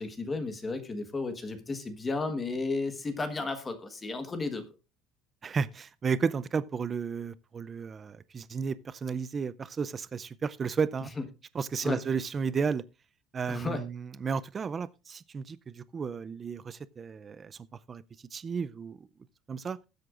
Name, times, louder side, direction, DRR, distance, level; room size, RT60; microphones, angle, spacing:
voice 1, 0.0-4.6 11.8-12.0 13.5-13.8, left 3 dB, 15° left, 1.3 m, -33 dB
voice 2, 5.4-11.1 11.5-12.8 13.3-17.6 17.9-18.0 18.3-19.1 19.5-19.8, right 5 dB, 25° right, 0.4 m, -33 dB
19.5 x 7.9 x 2.5 m
cardioid pair, 160°, 0 cm